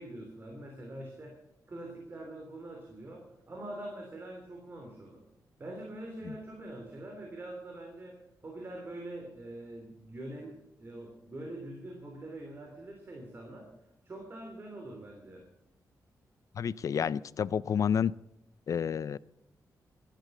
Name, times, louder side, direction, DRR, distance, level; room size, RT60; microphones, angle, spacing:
voice 1, 0.0-1.3 1.7-5.2 5.6-13.7 14.0-15.5, right 1 dB, 35° right, 1 dB, 3.0 m, -44 dB
voice 2, 16.6-18.1 18.7-19.2, left 7 dB, 55° left, 20 dB, 0.4 m, -30 dB
15.0 x 11.5 x 6.6 m, 0.79 s
wide cardioid pair, 130°, 7 cm